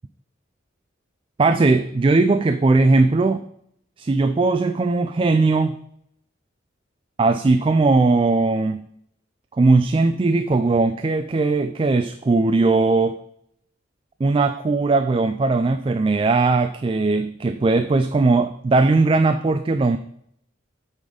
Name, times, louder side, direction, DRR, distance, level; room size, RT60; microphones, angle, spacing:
voice 1, 1.4-3.4 4.0-5.8 7.2-8.9 9.6-13.2 14.2-20.0, right 3 dB, 25° right, 9 dB, 0.3 m, -19 dB
8.4 x 4.1 x 5.0 m, 0.70 s
head